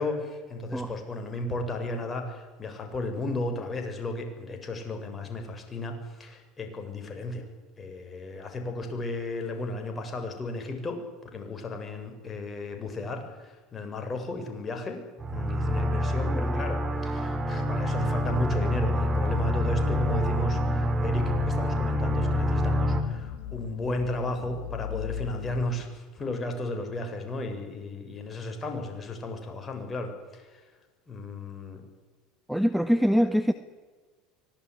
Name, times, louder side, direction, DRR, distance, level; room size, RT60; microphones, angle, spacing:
voice 1, 0.0-7.4 7.8-15.0 15.3-30.4 31.1-31.8, left 2 dB, 25° left, 5 dB, 7.2 m, -34 dB
sound 1, 15.2-23.0, equal, 25° right, 4.4 m, -26 dB
voice 2, 16.3-16.6 32.5-33.5, equal, ahead, 10 dB, 1.4 m, -24 dB
sound 2, 18.0-25.6, left 8 dB, 70° left, 3.2 m, -38 dB
25.0 x 18.5 x 9.9 m, 1.4 s
hypercardioid pair, 80°, 0 cm